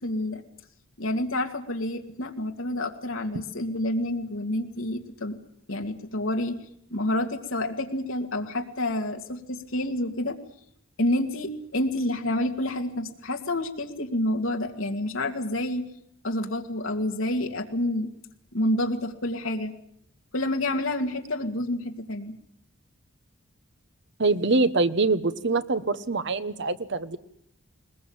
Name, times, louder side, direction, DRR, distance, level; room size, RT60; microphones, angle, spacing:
voice 1, 0.0-0.4 1.0-5.4 5.7-6.6 6.9-10.4 11.0-15.9 16.2-18.1 18.5-19.8 20.3-22.4, left 1 dB, 70° left, 4 dB, 2.3 m, -28 dB
voice 2, 24.2-27.2, right 3 dB, 60° right, 13 dB, 1.2 m, -24 dB
21.0 x 21.0 x 8.9 m, 0.69 s
head